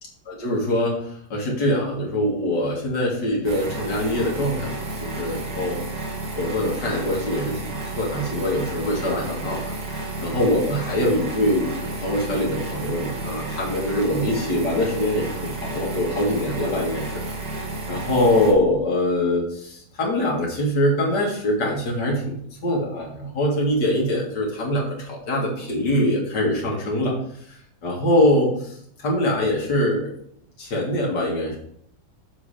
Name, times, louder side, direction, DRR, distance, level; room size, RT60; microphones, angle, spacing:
voice 1, 0.3-1.0 1.3-5.8 6.4-7.6 8.0-9.6 10.2-17.2 17.9-22.4 22.6-27.1 27.8-30.1 30.6-31.6, left 1 dB, 80° left, -3 dB, 2.7 m, -23 dB
sound 1, 3.4-18.5, right 2 dB, 75° right, 2.5 m, -31 dB
7.1 x 6.3 x 4.9 m, 0.66 s
omnidirectional pair, 1.9 m